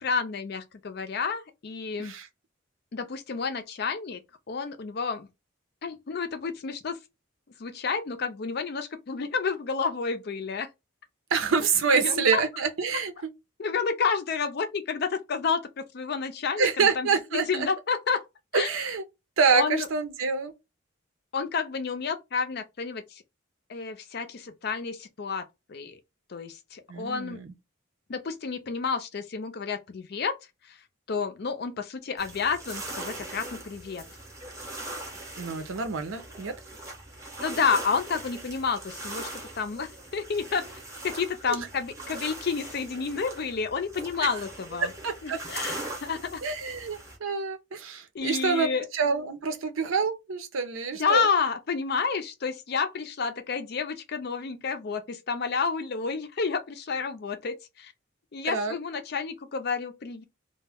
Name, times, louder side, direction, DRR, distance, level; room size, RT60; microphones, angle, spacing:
voice 1, 0.0-2.1 2.9-4.2 4.5-5.3 5.8-7.0 7.6-10.7 11.9-12.4 13.6-18.2 18.5-18.7 19.5-19.9 21.3-23.2 23.7-26.0 26.3-27.4 28.1-30.4 30.7-30.8 31.1-34.1 37.4-40.6 41.0-44.9 45.2-46.4 48.1-48.8 51.0-57.9 58.3-60.2, left 5 dB, 50° left, 0.5 m, -30 dB
voice 2, 11.3-13.3 16.6-17.7 18.5-19.0 19.4-20.5 26.9-27.5 35.4-36.5 41.5-41.6 44.2-44.3 45.0-45.4 46.4-48.7 48.9-51.3 58.4-58.8, right 5 dB, 90° right, 0.6 m, -27 dB
sound 1, 32.2-47.2, right 2 dB, 15° right, 0.7 m, -41 dB
2.3 x 2.1 x 3.4 m
head